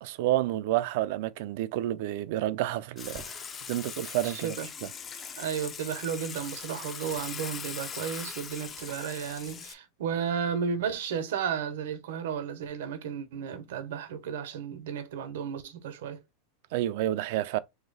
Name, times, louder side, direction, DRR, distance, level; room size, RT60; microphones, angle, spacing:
voice 1, 0.0-3.4 3.7-4.5 4.8-4.9 16.7-17.6, right 14 dB, 60° right, 0.4 m, -29 dB
Water / Water tap faucet / Sink (filling or washing), 3.0-9.7, left 6 dB, 25° left, 0.5 m, -40 dB
voice 2, 4.2-4.7 5.4-16.2, right 7 dB, 80° right, 0.9 m, -33 dB
3.2 x 2.9 x 3.9 m
supercardioid pair, 145°, 0 cm